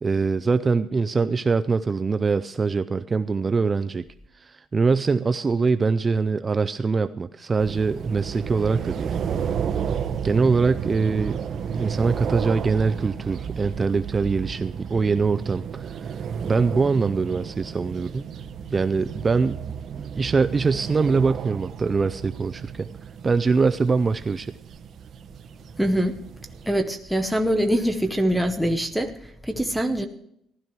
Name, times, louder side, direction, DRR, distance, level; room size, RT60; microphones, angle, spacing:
voice 1, 0.0-4.0 4.3-9.1 10.2-11.4 11.8-16.1 16.4-18.3 18.7-19.6 20.2-22.9 23.2-24.6, right 4 dB, 20° right, 11 dB, 0.4 m, -23 dB
sound 1, 7.6-26.7, right 7 dB, 45° right, 1.0 m, -32 dB
voice 2, 25.8-26.2 26.7-30.1, equal, ahead, 4 dB, 0.8 m, -24 dB
15.5 x 12.5 x 4.6 m, 0.74 s
cardioid pair, 160°, 0 cm